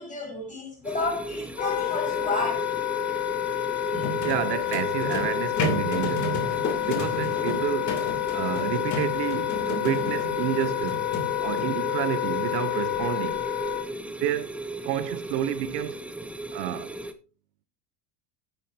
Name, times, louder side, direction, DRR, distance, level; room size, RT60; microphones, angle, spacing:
voice 1, 0.0-2.6 3.9-4.1, left 3 dB, 15° left, 5.2 m, -31 dB
sound 1, 0.8-17.1, right 1 dB, 5° right, 0.7 m, -36 dB
Wind instrument woodwind instrument, 1.6-13.9, left 16 dB, 70° left, 1.7 m, -29 dB
sound 2, 3.9-11.7, left 2 dB, 35° left, 2.9 m, -33 dB
voice 2, 4.2-6.4 6.8-7.9 8.3-11.0 11.4-13.4 14.2-14.6 14.8-16.0 16.5-16.9, right 12 dB, 85° right, 1.0 m, -30 dB
10.5 x 9.2 x 2.8 m
supercardioid pair, 100°, 48 cm